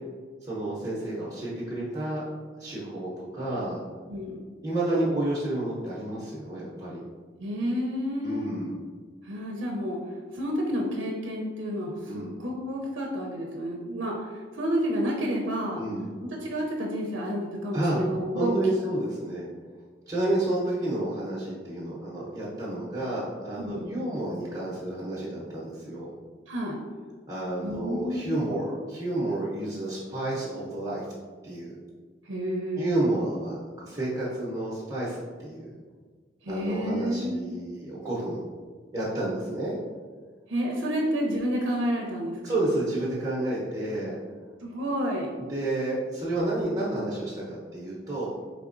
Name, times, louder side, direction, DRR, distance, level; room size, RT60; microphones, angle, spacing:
voice 1, 0.4-2.2 2.6-3.8 4.6-7.0 8.2-8.7 12.1-12.3 15.8-16.1 17.7-18.0 18.3-19.5 20.1-26.1 27.3-31.1 31.4-31.8 32.8-35.7 36.5-38.4 38.9-39.8 42.4-44.2 45.4-48.3, right 1 dB, 20° right, -7 dB, 0.8 m, -30 dB
voice 2, 4.1-4.4 7.4-8.5 9.2-10.0 10.3-15.8 16.2-18.6 23.6-23.9 26.5-26.8 27.6-28.6 32.2-33.0 36.4-37.5 40.5-42.5 44.6-45.3, equal, 80° right, -1 dB, 0.6 m, -30 dB
4.6 x 3.4 x 2.5 m, 1.5 s
head